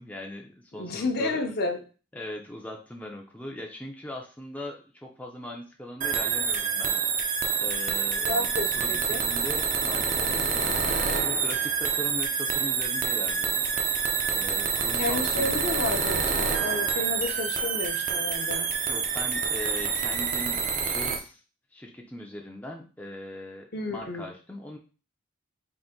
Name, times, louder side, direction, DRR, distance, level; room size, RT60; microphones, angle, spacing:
voice 1, 0.0-1.4 2.1-7.2 7.6-13.6 14.3-15.6 18.8-21.4 21.7-24.8, left 1 dB, 10° left, 0 dB, 0.4 m, -40 dB
voice 2, 0.7-1.8 8.3-9.2 15.0-18.7 23.7-24.2, left 2 dB, 50° left, 4 dB, 0.6 m, -31 dB
sound 1, 6.0-21.2, right 5 dB, 40° right, 0.5 m, -27 dB
3.8 x 2.6 x 3.6 m, 0.35 s
head